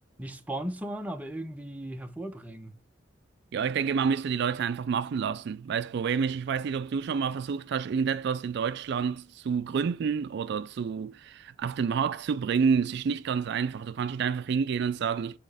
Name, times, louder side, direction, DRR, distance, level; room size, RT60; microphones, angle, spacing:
voice 1, 0.2-2.7, right 1 dB, 10° right, 0.6 m, -36 dB
voice 2, 3.5-15.4, right 6 dB, 60° right, 0.3 m, -29 dB
7.6 x 4.1 x 3.4 m
head